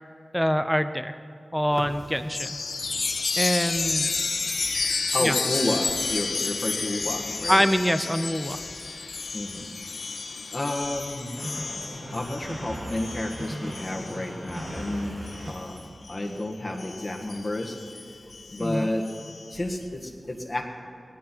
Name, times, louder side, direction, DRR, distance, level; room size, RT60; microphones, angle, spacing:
voice 1, 0.3-1.2 1.5-2.6 3.4-4.1 5.2-5.3 7.5-8.6 18.6-18.9, equal, ahead, 10 dB, 0.6 m, -24 dB
voice 2, 1.7-7.6 8.4-17.8 18.5-19.0 19.5-20.6, left 1 dB, 35° left, 1 dB, 1.7 m, -32 dB
Chime, 2.3-16.3 16.8-19.6, left 4 dB, 80° left, 0.8 m, -32 dB
sound 1, 11.4-15.5, right 1 dB, 60° right, 2.4 m, -38 dB
17.0 x 12.5 x 4.5 m, 2.7 s
cardioid pair, 40°, 0 cm